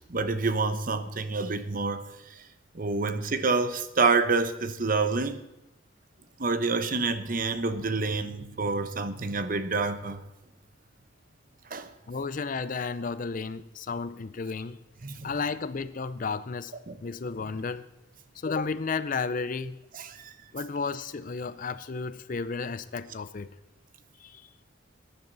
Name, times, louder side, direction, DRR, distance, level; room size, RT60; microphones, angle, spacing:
voice 1, 0.1-2.1 2.7-5.4 6.4-10.2 11.7-11.9 15.0-15.3 16.9-17.0 19.9-20.3, right 4 dB, 45° right, 0.9 m, -27 dB
voice 2, 12.1-14.8 15.2-16.7 17.0-17.9 18.3-19.8 20.5-23.5 24.2-24.5, left 4 dB, 45° left, 0.5 m, -33 dB
19.5 x 10.5 x 4.0 m
head